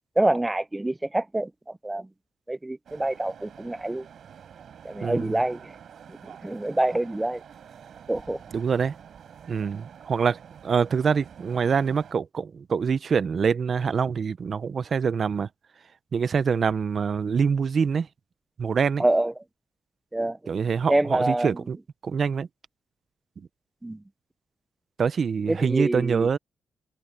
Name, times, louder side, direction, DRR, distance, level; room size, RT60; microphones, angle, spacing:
voice 1, 0.2-1.5 1.8-2.1 2.5-4.1 4.8-5.7 6.4-7.4 8.1-8.4 19.0-19.3 20.1-20.5 20.9-21.6 23.8-24.0 25.5-26.3, right 1 dB, 10° right, 0.4 m, -26 dB
sound 1, 2.9-12.1, right 8 dB, 70° right, 5.9 m, -48 dB
voice 2, 5.0-5.4 8.5-9.0 9.5-10.4 10.6-15.5 16.1-18.1 18.6-19.1 20.5-21.8 22.0-22.5 25.0-26.4, right 6 dB, 50° right, 0.7 m, -25 dB
cardioid pair, 115°, 0 cm